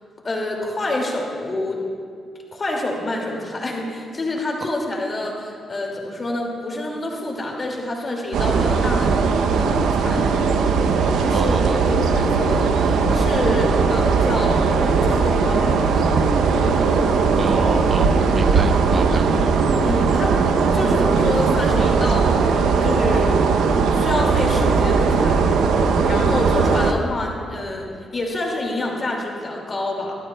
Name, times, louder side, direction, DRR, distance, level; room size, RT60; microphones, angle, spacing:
voice 1, 0.2-1.8 2.5-9.1 9.6-10.4 11.2-14.6 15.0-16.2 19.8-20.3 20.7-23.3 23.9-25.4 26.0-30.2, left 2 dB, 25° left, -1 dB, 2.3 m, -27 dB
sound 1, 8.3-26.9, right 5 dB, 85° right, 0.7 m, -18 dB
voice 2, 11.3-11.8 17.4-19.5 26.2-26.5, right 4 dB, 30° right, 8 dB, 0.3 m, -28 dB
25.5 x 13.5 x 2.3 m, 2.2 s
cardioid pair, 160°, 0 cm